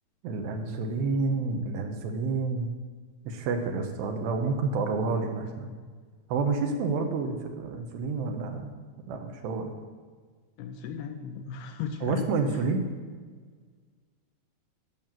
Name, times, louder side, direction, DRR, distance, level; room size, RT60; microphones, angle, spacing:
voice 1, 0.2-2.7 3.3-5.7 6.3-8.7 9.1-9.7 12.0-12.9, right 4 dB, 75° right, 5 dB, 3.1 m, -29 dB
voice 2, 10.6-12.3, left 7 dB, 80° left, 5 dB, 2.4 m, -36 dB
10.5 x 7.1 x 7.4 m, 1.5 s
omnidirectional pair, 5.1 m